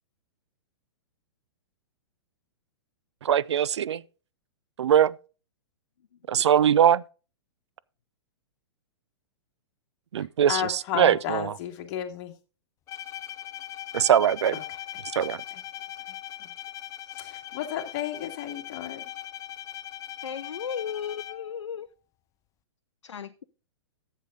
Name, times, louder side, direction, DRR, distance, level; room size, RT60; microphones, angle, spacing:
voice 1, 3.2-4.0 4.8-5.1 6.3-7.0 10.1-11.5 13.9-14.6 15.2-15.4, right 9 dB, 70° right, 0.4 m, -21 dB
voice 2, 10.2-12.3 14.5-14.6 14.9-15.0 15.5-15.6 17.2-19.0, left 11 dB, 40° left, 1.9 m, -33 dB
Bowed string instrument, 12.9-21.6, left 13 dB, 20° left, 0.4 m, -40 dB
voice 3, 20.2-21.9 23.0-23.4, left 7 dB, 80° left, 0.5 m, -35 dB
11.0 x 7.6 x 3.8 m
hypercardioid pair, 115°, 15 cm